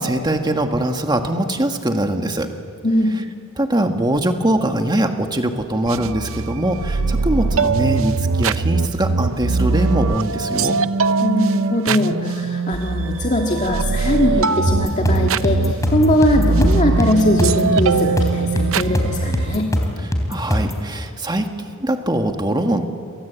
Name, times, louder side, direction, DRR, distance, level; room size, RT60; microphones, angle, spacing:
voice 1, 0.0-2.5 3.6-10.7 20.3-22.9, right 1 dB, 20° right, 5 dB, 1.7 m, -22 dB
voice 2, 2.8-3.1 11.2-19.7, left 1 dB, 35° left, 1 dB, 1.9 m, -20 dB
sound 1, 5.9-19.6, right 4 dB, 65° right, 0.7 m, -21 dB
sound 2, 14.7-20.8, equal, 15° left, 3.5 m, -22 dB
28.5 x 24.5 x 8.3 m, 2.3 s
head